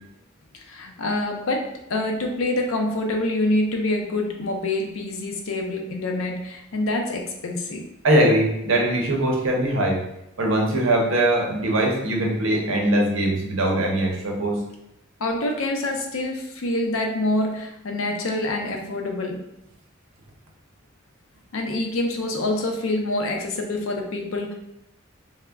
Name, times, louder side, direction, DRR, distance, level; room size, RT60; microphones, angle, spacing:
voice 1, 0.7-7.8 15.2-19.4 21.5-24.5, left 2 dB, 80° left, 2 dB, 0.5 m, -26 dB
voice 2, 8.0-10.0 10.4-14.6, right 1 dB, 70° right, -1 dB, 0.7 m, -21 dB
2.2 x 2.1 x 3.4 m, 0.85 s
head